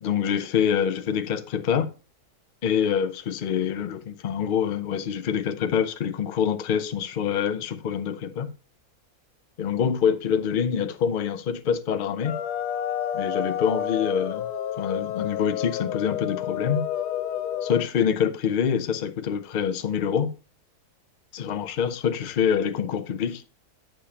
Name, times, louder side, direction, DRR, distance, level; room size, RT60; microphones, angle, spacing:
voice 1, 0.0-1.9 2.6-8.5 9.6-12.3 13.1-14.5 14.8-16.8 17.6-20.3 21.3-23.4, left 7 dB, 50° left, 0.6 m, -25 dB
sound 1, 12.2-17.9, left 9 dB, 90° left, 1.3 m, -30 dB
8.9 x 6.8 x 2.9 m
omnidirectional pair, 1.7 m